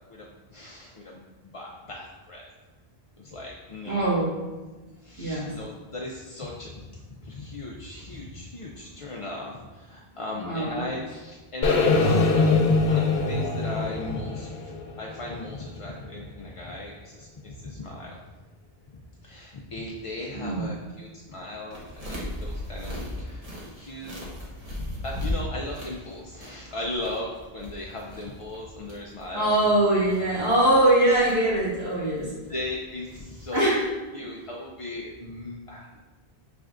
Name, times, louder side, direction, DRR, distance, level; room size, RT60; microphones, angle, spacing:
voice 1, 0.1-2.5 3.2-4.1 5.0-18.2 19.2-23.4 23.8-24.2 25.0-29.7 32.5-33.7 34.1-36.0, left 2 dB, 55° left, -2 dB, 0.4 m, -37 dB
voice 2, 3.8-4.4 5.2-5.5 10.3-10.8 13.3-13.4 20.3-20.7 29.3-32.3 33.5-33.9 34.2-34.3, right 1 dB, 80° right, -8 dB, 1.9 m, -22 dB
sound 1, 11.6-15.7, left 3 dB, 80° left, 0.8 m, -23 dB
sound 2, 21.7-33.9, left 1 dB, 40° right, 1.0 m, -38 dB
6.2 x 3.3 x 2.4 m, 1.2 s
omnidirectional pair, 1.0 m